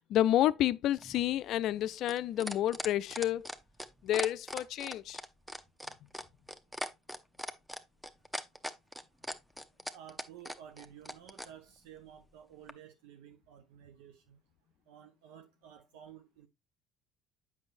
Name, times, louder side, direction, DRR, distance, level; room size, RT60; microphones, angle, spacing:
voice 1, 0.1-3.5 4.0-5.2, left 12 dB, 65° left, 0.4 m, -29 dB
sound 1, 1.0-11.5 12.7-12.8, equal, 5° right, 0.8 m, -40 dB
voice 2, 9.9-14.4 14.9-16.5, right 9 dB, 80° right, 0.7 m, -53 dB
7.9 x 6.0 x 2.5 m
hypercardioid pair, 65°, 0 cm